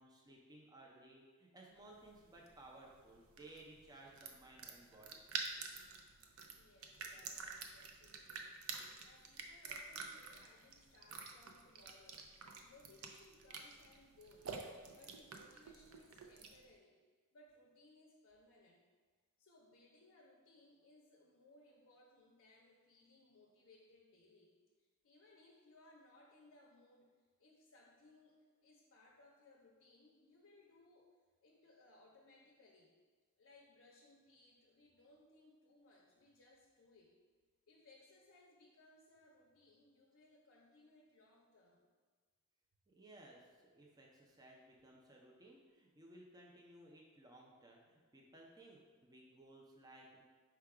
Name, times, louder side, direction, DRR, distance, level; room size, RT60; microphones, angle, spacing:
voice 1, 0.0-5.2 42.9-50.2, right 1 dB, 20° right, -2 dB, 0.5 m, -59 dB
sound 1, 1.9-16.7, right 5 dB, 70° right, 0.4 m, -49 dB
voice 2, 6.5-14.6 14.9-17.0 17.3-18.8 19.4-31.1 31.4-33.0 33.4-37.2 37.7-41.9, left 2 dB, 65° left, -1 dB, 0.5 m, -66 dB
4.6 x 2.3 x 4.7 m, 1.5 s
head